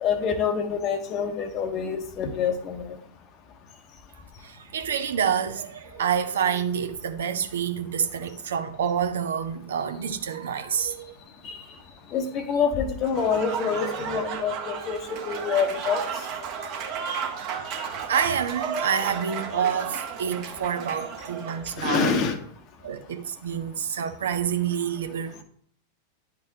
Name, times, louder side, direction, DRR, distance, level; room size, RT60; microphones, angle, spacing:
voice 1, 0.0-3.0 11.4-11.6 12.1-16.0 21.8-22.4, left 6 dB, 35° left, 0.9 m, -26 dB
voice 2, 4.4-11.2 18.1-22.1 22.8-25.4, right 8 dB, 65° right, 0.6 m, -28 dB
Applause / Crowd, 13.0-21.9, right 6 dB, 40° right, 1.1 m, -33 dB
10.5 x 3.8 x 2.8 m
figure-of-eight pair, 90°, 0 cm